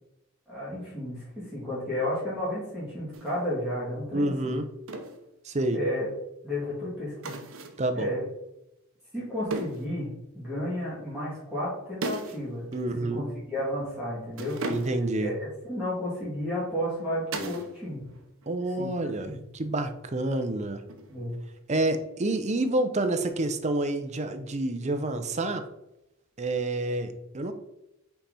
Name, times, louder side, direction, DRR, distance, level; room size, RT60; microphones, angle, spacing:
voice 1, 0.5-4.6 5.7-6.1 6.4-7.4 7.9-8.2 9.1-12.7 13.1-14.6 15.2-18.1 18.8-19.0 19.2-19.4 21.1-21.4, left 1 dB, 5° right, -10 dB, 2.4 m, -32 dB
sound 1, 3.1-3.4 4.9-5.2 7.2-7.9 9.5-9.9 12.0-12.5 12.7-12.8 14.3-15.2 17.3-17.7 18.0-18.6 20.9-21.4, right 2 dB, 70° right, 0.8 m, -36 dB
voice 2, 4.1-4.7 5.4-5.8 7.8-8.1 12.7-13.3 14.7-15.3 18.5-20.8 21.7-25.6 26.4-27.5, right 2 dB, 30° right, 8 dB, 0.6 m, -28 dB
5.8 x 4.3 x 4.1 m, 0.88 s
head